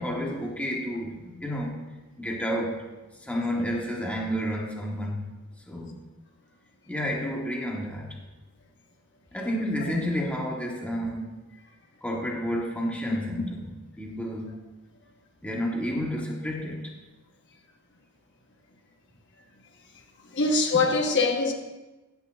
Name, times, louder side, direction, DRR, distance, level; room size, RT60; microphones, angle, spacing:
voice 1, 0.0-1.7 2.2-2.8 3.2-5.3 5.7-6.0 6.9-8.1 9.3-11.3 12.0-14.5 15.4-16.8, equal, 5° left, -1 dB, 1.2 m, -30 dB
voice 2, 20.3-21.5, left 3 dB, 55° left, 3 dB, 1.1 m, -23 dB
15.0 x 8.3 x 2.5 m, 1.1 s
head